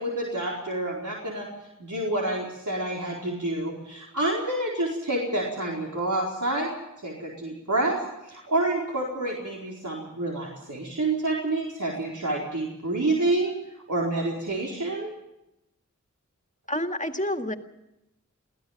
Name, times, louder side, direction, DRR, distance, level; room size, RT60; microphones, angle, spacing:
voice 1, 0.0-1.5 1.8-6.7 7.0-8.0 8.2-13.6 13.9-15.1, right 2 dB, 70° right, -3 dB, 4.6 m, -28 dB
voice 2, 16.7-17.5, left 1 dB, 25° left, 6 dB, 2.0 m, -28 dB
23.5 x 16.5 x 7.4 m, 0.89 s
wide cardioid pair, 50°, 31 cm